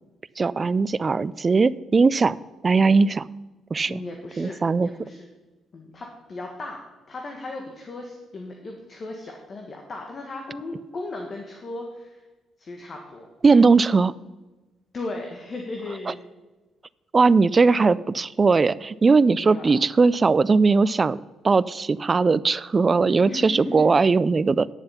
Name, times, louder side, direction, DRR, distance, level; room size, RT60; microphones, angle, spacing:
voice 1, 0.4-2.4 2.6-3.3 3.7-4.0 4.4-4.9 13.4-14.1 17.1-21.2 21.4-24.7, right 4 dB, 30° right, 19 dB, 0.3 m, -19 dB
voice 2, 3.8-5.3 5.7-12.2 12.6-13.2 14.9-16.2 19.4-19.7 23.2-23.9, left 2 dB, 45° left, 2 dB, 1.4 m, -36 dB
10.0 x 7.1 x 5.7 m, 1.2 s
cardioid pair, 90°, 0 cm